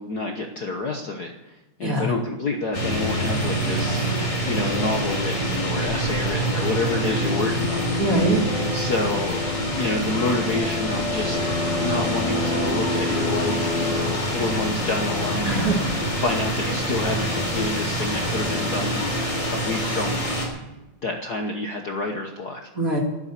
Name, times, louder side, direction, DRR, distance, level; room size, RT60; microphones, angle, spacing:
voice 1, 0.0-4.0 4.5-7.9 8.7-9.4 9.8-11.4 11.8-15.7 16.2-19.1 19.5-20.3 21.0-22.7, left 2 dB, 70° left, 3 dB, 0.9 m, -28 dB
sound 1, 2.7-20.5, equal, 25° left, 3.7 m, -25 dB
voice 2, 8.0-8.4 15.4-16.2 22.7-23.0, right 2 dB, 30° right, 1 dB, 2.6 m, -23 dB
12.5 x 11.5 x 8.3 m, 1.0 s
omnidirectional pair, 3.4 m